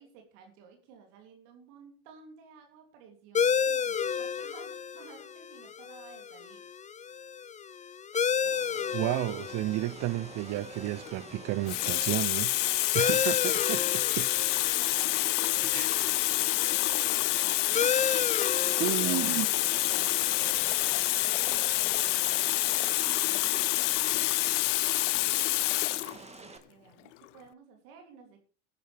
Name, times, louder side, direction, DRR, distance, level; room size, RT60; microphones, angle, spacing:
voice 1, 0.0-6.7 12.3-12.4 14.5-19.3 19.8-28.4, right 6 dB, 75° right, 3.2 m, -54 dB
sound 1, 3.3-22.5, left 7 dB, 20° left, 0.6 m, -34 dB
sound 2, 8.4-26.6, right 3 dB, 15° right, 2.0 m, -47 dB
voice 2, 8.9-14.3 15.7-16.1 18.8-19.5, right 16 dB, 50° right, 0.7 m, -32 dB
Water tap faucet, 10.9-11.1 11.7-26.2 27.1-27.2, left 19 dB, 90° left, 0.5 m, -27 dB
19.0 x 10.0 x 3.5 m
supercardioid pair, 90°, 36 cm